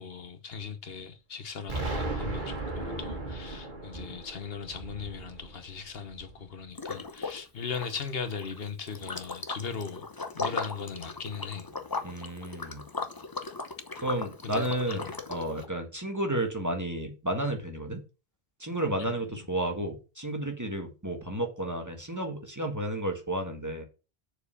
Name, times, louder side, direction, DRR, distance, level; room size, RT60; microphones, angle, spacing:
voice 1, 0.0-10.0 10.3-11.7 14.4-15.1 19.0-19.1, left 5 dB, 70° left, 1.1 m, -38 dB
Explosion, 1.7-6.5, right 2 dB, 50° right, 2.1 m, -36 dB
Liquid, 6.7-7.4 7.7-15.6, left 3 dB, 20° left, 0.8 m, -37 dB
voice 2, 12.0-12.8 14.0-18.0 18.6-23.8, right 1 dB, 15° right, 1.6 m, -32 dB
6.8 x 4.7 x 6.7 m
omnidirectional pair, 1.1 m